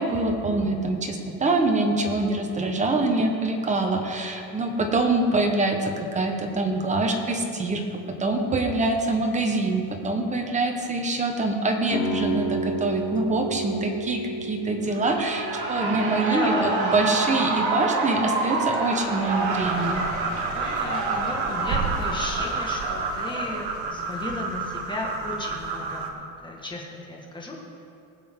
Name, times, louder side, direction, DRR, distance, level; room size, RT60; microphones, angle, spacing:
voice 1, 0.0-20.1, right 2 dB, 20° right, 3 dB, 1.2 m, -25 dB
sound 1, 11.9-17.7, right 1 dB, 50° left, 2.9 m, -32 dB
Shout / Cheering, 14.9-23.8, right 3 dB, 85° right, 3.1 m, -29 dB
voice 2, 16.3-17.4 20.5-27.6, left 2 dB, 10° left, -2 dB, 1.8 m, -34 dB
sound 2, 18.9-26.1, right 4 dB, 70° right, 1.6 m, -30 dB
20.0 x 7.7 x 3.8 m, 2.6 s
cardioid pair, 150°, 39 cm